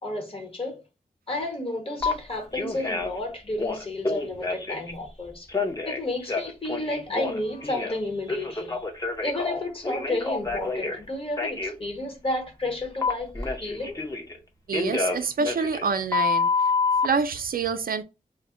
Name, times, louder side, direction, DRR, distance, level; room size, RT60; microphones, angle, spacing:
voice 1, 0.0-0.8 1.3-5.5 5.8-8.8 9.2-13.3 13.6-14.0, left 2 dB, 40° left, 1.0 m, -32 dB
Telephone, 2.0-2.1 2.5-3.2 3.5-4.9 5.5-8.0 8.3-11.0 11.4-11.7 13.0-14.4 14.7-17.1, left 4 dB, 25° left, 0.6 m, -28 dB
voice 2, 14.7-16.5 17.0-18.0, right 5 dB, 75° right, 0.4 m, -26 dB
2.1 x 2.0 x 3.6 m
wide cardioid pair, 75°, 15 cm